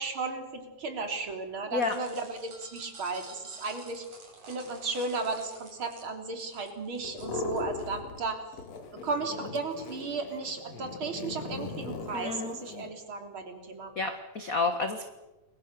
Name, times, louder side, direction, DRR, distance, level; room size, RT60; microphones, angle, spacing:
voice 1, 0.0-4.1 4.5-8.4 9.0-13.9, right 3 dB, 40° right, 5 dB, 4.0 m, -35 dB
sound 1, 1.8-7.8, right 4 dB, 70° right, 7.1 m, -50 dB
sound 2, 7.0-8.3 8.5-12.9, left 3 dB, 55° left, 3.7 m, -39 dB
voice 2, 12.1-12.5 13.9-15.1, left 3 dB, 40° left, 7 dB, 1.3 m, -30 dB
29.5 x 23.0 x 6.8 m, 1.1 s
omnidirectional pair, 3.6 m